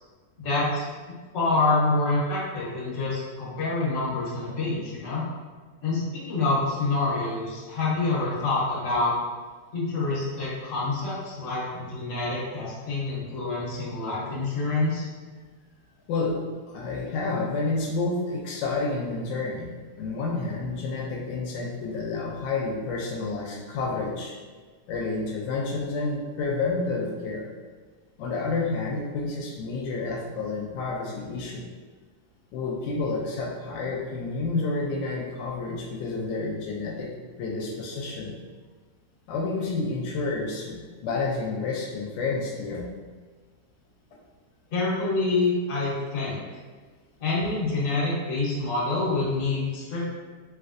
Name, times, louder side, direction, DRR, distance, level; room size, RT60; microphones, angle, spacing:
voice 1, 0.4-0.9 1.3-5.2 5.8-9.1 9.7-15.0 44.7-46.4 47.2-50.1, left 3 dB, 50° left, -7 dB, 1.2 m, -27 dB
voice 2, 16.7-19.7 20.0-24.3 24.9-27.4 28.2-31.7 32.5-37.1 37.4-38.3 39.3-42.8, left 3 dB, 85° left, -2 dB, 1.2 m, -29 dB
3.2 x 2.9 x 2.5 m, 1.4 s
omnidirectional pair, 1.9 m